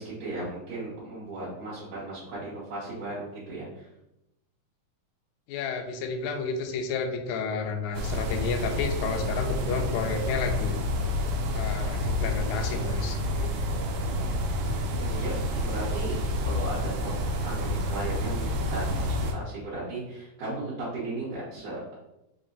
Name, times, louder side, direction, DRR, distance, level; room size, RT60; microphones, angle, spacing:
voice 1, 0.0-3.9 15.0-22.0, right 2 dB, 65° right, -9 dB, 2.1 m, -36 dB
voice 2, 5.5-10.8 11.5-13.9, left 4 dB, 80° left, 4 dB, 1.8 m, -31 dB
sound 1, 7.9-19.3, left 1 dB, 80° right, 2.1 m, -29 dB
5.0 x 2.1 x 3.8 m, 0.88 s
omnidirectional pair, 3.6 m